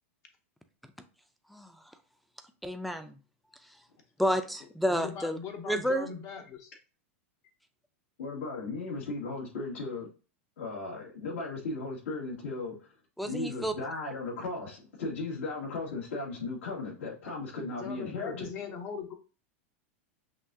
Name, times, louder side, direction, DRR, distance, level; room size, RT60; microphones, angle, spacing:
voice 1, 2.6-3.2 4.2-5.4 5.7-6.1 13.2-13.7, equal, ahead, 8 dB, 0.5 m, -30 dB
voice 2, 4.6-6.7 17.0-17.1 17.6-19.1, left 6 dB, 40° left, 4 dB, 0.8 m, -40 dB
voice 3, 8.2-10.1 10.6-12.9 13.2-18.5, left 3 dB, 75° left, -2 dB, 1.9 m, -36 dB
5.8 x 2.4 x 2.7 m, 0.34 s
hypercardioid pair, 120°, 7 cm